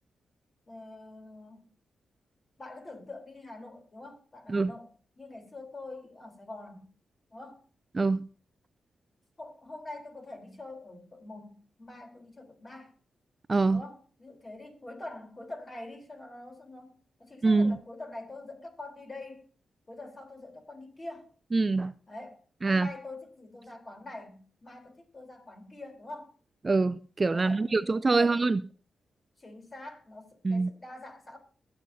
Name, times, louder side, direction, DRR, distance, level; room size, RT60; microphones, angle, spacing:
voice 1, 0.7-1.7 2.6-6.9 7.3-7.6 9.4-12.9 13.7-19.5 19.9-21.3 22.1-26.4 27.3-28.4 29.4-31.4, left 2 dB, 35° left, 3.7 m, -45 dB
voice 2, 13.5-13.8 17.4-17.8 21.5-21.9 22.6-22.9 26.6-28.6 30.4-30.7, right 3 dB, 35° right, 0.4 m, -24 dB
22.0 x 7.8 x 2.7 m
cardioid pair, 55°, 0 cm